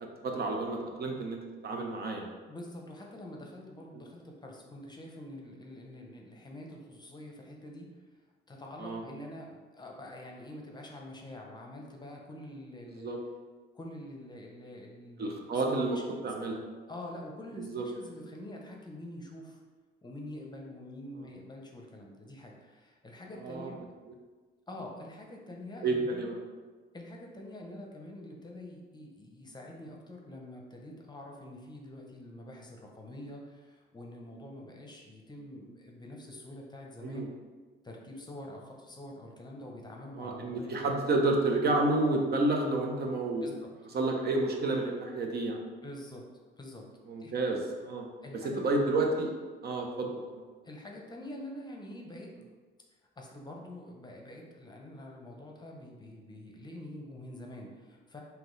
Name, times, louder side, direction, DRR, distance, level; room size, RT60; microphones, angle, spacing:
voice 1, 0.0-2.3 3.9-4.0 8.8-9.0 13.0-13.2 15.2-16.0 16.2-16.5 17.7-17.9 21.2-21.3 23.4-23.7 25.8-26.4 37.0-37.3 40.2-43.5 43.9-45.6 47.1-48.1 48.4-49.3 49.6-50.4, right 2 dB, 55° right, 1 dB, 0.7 m, -30 dB
voice 2, 2.5-7.9 8.5-13.1 13.7-15.6 15.9-16.3 16.9-19.6 20.0-23.8 24.7-26.3 26.9-37.3 37.8-40.9 43.4-43.7 45.8-46.2 46.6-46.8 47.2-47.3 48.2-48.6 50.6-52.3 53.2-58.2, left 1 dB, 20° left, 0 dB, 0.7 m, -46 dB
3.8 x 2.8 x 3.8 m, 1.4 s
cardioid pair, 90°, 20 cm